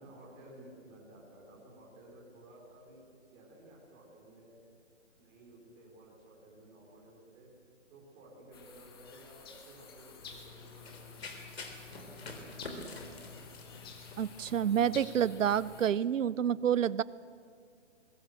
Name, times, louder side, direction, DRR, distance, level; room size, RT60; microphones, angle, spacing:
voice 1, 0.0-3.0 3.3-4.6 5.2-7.5 7.9-11.5 11.9-13.6 14.9-15.8 16.1-16.3, right 1 dB, 10° right, -3 dB, 3.6 m, -55 dB
sound 1, 8.5-15.9, left 5 dB, 20° left, 1.5 m, -52 dB
Run, 10.2-15.8, left 3 dB, 55° left, 3.6 m, -47 dB
voice 2, 14.2-17.0, right 9 dB, 85° right, 20 dB, 0.6 m, -28 dB
22.5 x 20.5 x 7.7 m, 2.2 s
hypercardioid pair, 175°, 37 cm